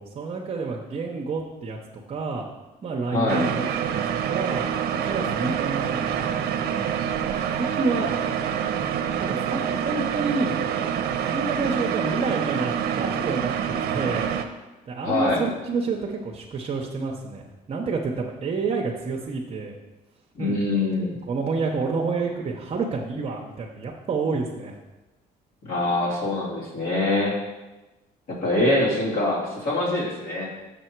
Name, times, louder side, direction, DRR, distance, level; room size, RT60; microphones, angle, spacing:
voice 1, 0.0-1.8 2.1-2.4 2.8-4.0 4.3-4.6 5.0-8.1 8.6-8.7 9.1-10.6 11.2-13.5 13.8-14.4 14.9-19.7 20.4-20.5 21.3-24.8, right 4 dB, 40° right, 0 dB, 0.8 m, -29 dB
voice 2, 3.1-3.5 15.0-15.4 20.3-21.2 25.6-27.4 28.3-30.5, left 2 dB, 60° left, -4 dB, 2.6 m, -24 dB
sound 1, 3.3-14.4, right 8 dB, 70° right, 0.7 m, -26 dB
6.6 x 6.1 x 4.6 m, 1.1 s
cardioid pair, 110°, 17 cm